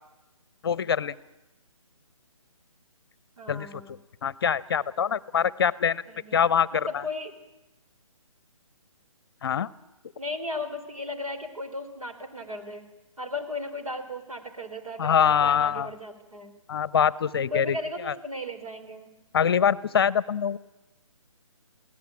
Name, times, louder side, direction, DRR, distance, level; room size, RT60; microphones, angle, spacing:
voice 1, 0.6-1.2 3.5-3.7 4.2-6.0 6.3-7.0 9.4-9.7 15.0-15.9 16.7-17.8 18.1-18.2 19.3-20.6, left 8 dB, 45° left, 21 dB, 0.7 m, -24 dB
voice 2, 3.4-4.0 6.0-6.4 6.7-7.3 10.2-12.9 13.2-16.5 17.5-19.1, left 2 dB, 85° right, 5 dB, 4.0 m, -36 dB
22.0 x 17.0 x 8.6 m, 1.0 s
figure-of-eight pair, 145°, 18 cm